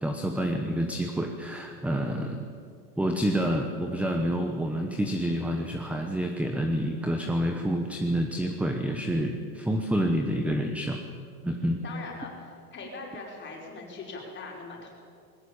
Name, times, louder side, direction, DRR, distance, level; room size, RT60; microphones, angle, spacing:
voice 1, 0.0-2.5 3.0-11.0 11.4-11.8, equal, 5° right, 5 dB, 1.1 m, -28 dB
voice 2, 11.8-14.9, left 3 dB, 25° left, -1 dB, 5.6 m, -41 dB
20.5 x 18.0 x 8.8 m, 2.3 s
supercardioid pair, 140°, 48 cm